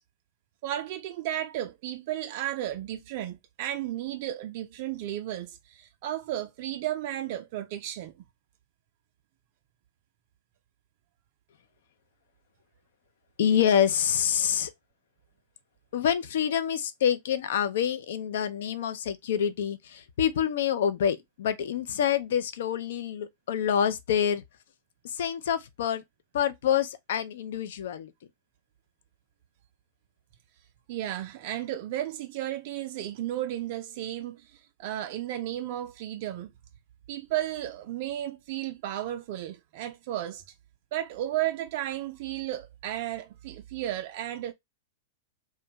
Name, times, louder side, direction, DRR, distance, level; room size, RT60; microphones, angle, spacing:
voice 1, 0.6-8.1 30.9-36.5 37.1-40.4 40.9-44.5, right 13 dB, 55° right, 0.3 m, -33 dB
voice 2, 13.4-14.7 15.9-24.4 25.0-26.0 26.3-28.1, left 9 dB, 65° left, 0.4 m, -27 dB
2.5 x 2.1 x 2.8 m
hypercardioid pair, 105°, 0 cm